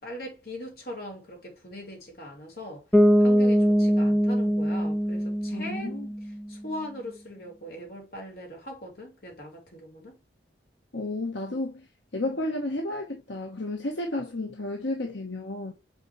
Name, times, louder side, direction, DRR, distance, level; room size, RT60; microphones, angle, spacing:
voice 1, 0.0-2.8 3.2-5.9 6.5-10.2, left 1 dB, 55° left, 3.9 m, -40 dB
Bass guitar, 2.9-6.6, equal, 10° left, 1.3 m, -22 dB
voice 2, 5.5-6.1 10.9-11.9 12.1-15.7, left 2 dB, 75° left, 1.3 m, -32 dB
8.3 x 4.4 x 3.2 m
head